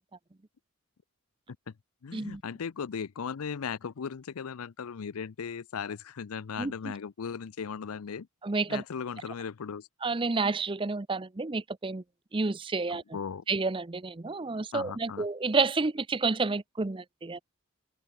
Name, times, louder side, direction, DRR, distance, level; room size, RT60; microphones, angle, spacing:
voice 1, 2.0-8.3 8.7-9.9 12.9-13.4 14.7-15.3, left 6 dB, 80° left, 0.5 m, -37 dB
voice 2, 8.4-8.8 10.0-12.0 12.3-13.0 13.5-17.4, right 3 dB, 25° right, 0.5 m, -30 dB
head